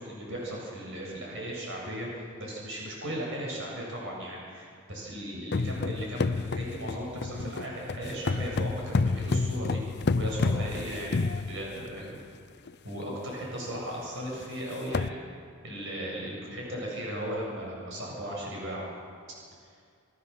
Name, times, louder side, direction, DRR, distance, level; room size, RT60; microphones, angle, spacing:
voice 1, 0.0-9.8 10.1-12.2 12.8-15.2 15.6-18.8, equal, 60° right, -3 dB, 7.6 m, -36 dB
sound 1, 5.5-12.0 12.7-12.8 13.1-13.3 13.7-13.8 14.4-14.5 14.7-15.1, left 3 dB, 50° left, 0.5 m, -30 dB
27.5 x 17.5 x 7.2 m, 2.3 s
head